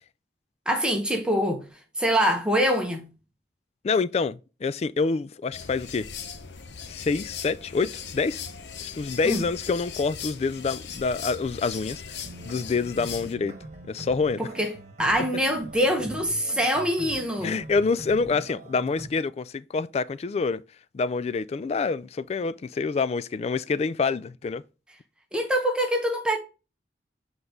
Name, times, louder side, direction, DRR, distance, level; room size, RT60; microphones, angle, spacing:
voice 1, 0.7-1.6 2.0-3.1 9.2-9.4 14.4-14.7 15.0-17.6 25.3-26.4, equal, 5° right, 1.0 m, -24 dB
voice 2, 3.8-6.1 6.9-8.4 8.8-13.5 13.9-14.4 17.4-20.6 20.9-24.6, left 4 dB, 35° left, 0.3 m, -27 dB
sound 1, 5.5-13.3, left 7 dB, 75° left, 0.8 m, -39 dB
sound 2, 12.2-19.1, right 1 dB, 40° right, 1.3 m, -42 dB
7.9 x 3.9 x 3.5 m
head